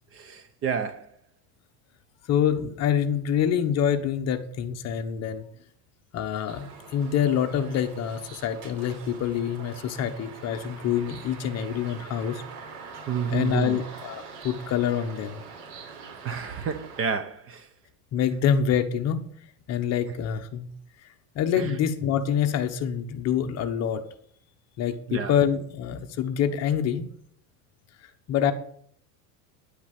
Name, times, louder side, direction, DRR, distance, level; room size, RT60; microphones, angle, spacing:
voice 1, 0.1-1.1 13.1-13.8 16.2-17.7 21.6-21.8 25.1-25.3, right 6 dB, 30° right, 0.8 m, -30 dB
voice 2, 2.3-5.5 6.1-12.4 13.3-15.4 18.1-19.2 19.7-20.7 21.0-21.1 21.3-24.0 24.8-27.1 28.3-28.5, left 8 dB, 30° left, 1.1 m, -26 dB
sound 1, 6.5-17.0, right 5 dB, 65° right, 4.0 m, -44 dB
10.5 x 7.2 x 9.3 m
cardioid pair, 165°, 48 cm